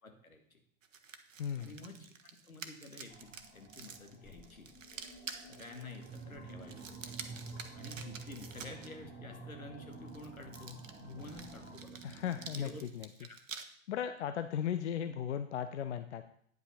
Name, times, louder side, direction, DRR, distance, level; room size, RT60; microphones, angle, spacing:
voice 1, 0.0-0.6 1.6-2.1 2.4-4.7 5.5-6.8 7.7-12.0 12.6-12.9 13.3-13.4, left 2 dB, 80° left, 4 dB, 1.8 m, -49 dB
sound 1, 0.8-8.9 9.9-13.6, right 6 dB, 65° right, 1.0 m, -49 dB
voice 2, 1.4-1.7 12.0-13.1 13.9-16.2, left 9 dB, 55° left, 9 dB, 0.7 m, -36 dB
sound 2, 3.1-11.8, left 1 dB, 20° left, 2.8 m, -57 dB
sound 3, 6.1-12.8, right 5 dB, 10° right, 0.6 m, -50 dB
9.2 x 5.6 x 5.7 m, 0.62 s
figure-of-eight pair, 100°, 41 cm